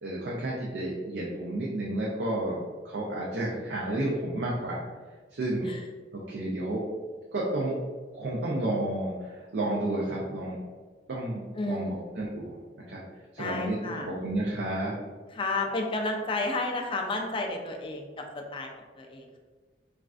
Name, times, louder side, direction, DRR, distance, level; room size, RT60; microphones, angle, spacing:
voice 1, 0.0-4.8 5.3-5.7 6.1-6.8 7.3-7.7 8.1-10.6 11.1-12.6 12.9-13.0 13.3-15.0, right 1 dB, 70° right, -4 dB, 0.5 m, -31 dB
voice 2, 11.5-12.2 13.4-14.1 15.3-19.4, left 2 dB, 30° left, 2 dB, 0.4 m, -32 dB
3.1 x 2.4 x 2.4 m, 1.4 s
head